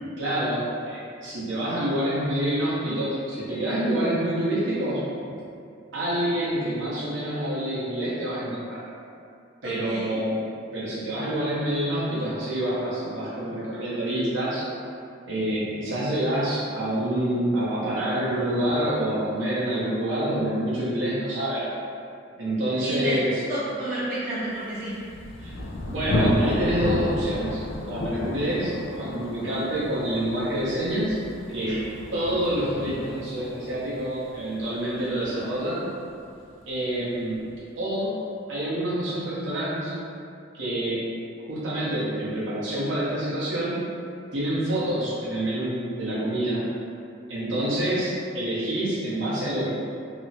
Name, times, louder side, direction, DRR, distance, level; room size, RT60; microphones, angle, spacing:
voice 1, 0.2-5.1 5.9-8.8 9.6-14.6 15.3-21.7 22.4-23.3 25.4-25.5 25.9-31.2 31.5-31.8 32.1-35.9 36.6-37.5 37.8-40.0 40.5-41.1 41.4-43.9 44.3-46.7 47.3-49.7, right 1 dB, 80° right, -9 dB, 0.9 m, -27 dB
voice 2, 9.6-10.2 15.8-16.0 22.8-23.2 23.5-25.0 31.6-31.7, right 1 dB, 45° right, -13 dB, 0.8 m, -31 dB
Thunder, 24.8-36.3, left 1 dB, 80° left, 0.4 m, -31 dB
3.0 x 2.0 x 2.6 m, 2.5 s
head